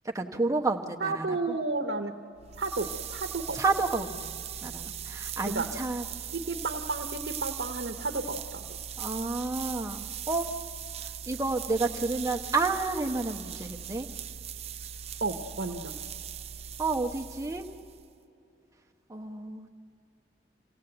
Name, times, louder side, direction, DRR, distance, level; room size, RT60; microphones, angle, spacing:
voice 1, 0.1-1.2 3.5-4.3 4.6-6.0 9.0-10.5 11.3-14.1 16.8-17.7 19.1-19.7, right 3 dB, 20° right, 3 dB, 1.0 m, -30 dB
voice 2, 1.0-2.1 2.6-3.6 5.5-5.7 6.3-8.6 15.2-15.9, right 3 dB, 80° right, 5 dB, 1.0 m, -32 dB
sound 1, 2.4-18.1, right 8 dB, 35° right, 0.5 m, -39 dB
27.0 x 17.0 x 7.9 m, 2.6 s
head